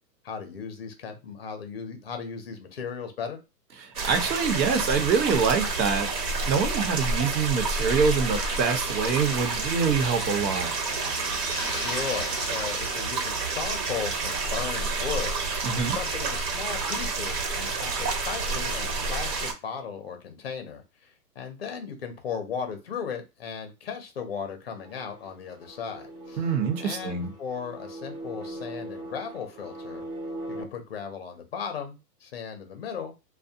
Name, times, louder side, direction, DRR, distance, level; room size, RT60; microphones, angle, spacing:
voice 1, 0.2-3.4 11.6-26.4 26.8-30.0 30.5-33.1, left 6 dB, 40° left, 0.5 m, -36 dB
voice 2, 3.8-10.7 15.6-16.0 26.4-27.3, right 5 dB, 90° right, 1.0 m, -25 dB
sound 1, 3.9-19.5, right 3 dB, 65° right, 1.2 m, -29 dB
sound 2, 7.7-13.1, left 2 dB, 5° left, 0.7 m, -40 dB
sound 3, 24.7-30.6, right 1 dB, 35° right, 0.7 m, -40 dB
2.5 x 2.1 x 2.7 m
hypercardioid pair, 165°, 50 cm